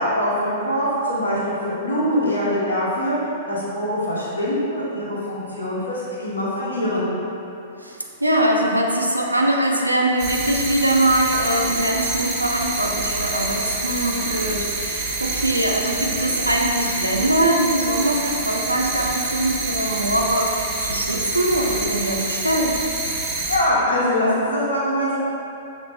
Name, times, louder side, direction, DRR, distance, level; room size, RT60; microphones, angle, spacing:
voice 1, 0.0-3.1 3.5-7.1 23.5-25.2, equal, 70° left, -9 dB, 1.0 m, -23 dB
voice 2, 7.8-22.8, right 1 dB, 90° right, 0 dB, 0.5 m, -22 dB
sound 1, 10.2-23.6, right 3 dB, 35° right, 0.8 m, -27 dB
6.1 x 2.4 x 3.2 m, 2.7 s
figure-of-eight pair, 105°, 0 cm